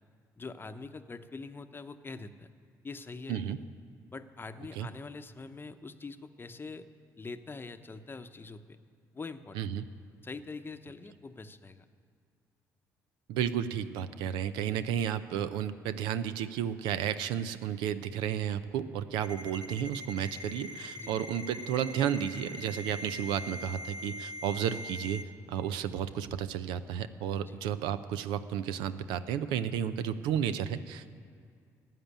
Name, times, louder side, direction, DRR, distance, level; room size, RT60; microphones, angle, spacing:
voice 1, 0.4-2.5 2.8-3.6 4.1-6.9 7.2-8.8 9.1-9.6 10.2-11.9 20.9-21.1 27.5-27.6, left 3 dB, 25° left, 9 dB, 0.8 m, -44 dB
voice 2, 9.5-9.9 13.3-31.2, right 9 dB, 80° right, 13 dB, 0.5 m, -32 dB
Ringtone, 19.2-25.2, left 1 dB, 60° right, 1.8 m, -42 dB
13.0 x 7.5 x 10.0 m, 2.2 s
supercardioid pair, 60°, 8 cm